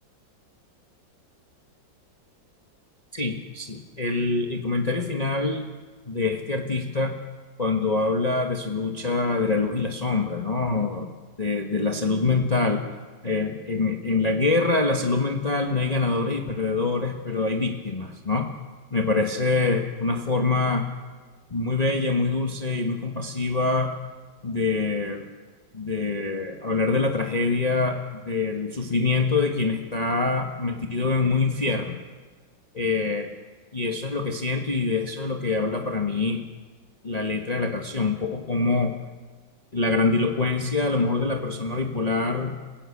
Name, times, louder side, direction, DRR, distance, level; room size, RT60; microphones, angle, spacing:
voice 1, 3.1-5.7 6.1-7.2 7.6-11.1 11.4-12.9 13.2-18.5 18.9-20.9 21.5-23.9 24.4-25.3 25.7-32.0 32.7-33.3 33.7-36.4 37.0-39.0 39.7-42.6, left 3 dB, 20° left, 3 dB, 1.4 m, -25 dB
29.5 x 17.0 x 8.6 m, 1.4 s
omnidirectional pair, 2.1 m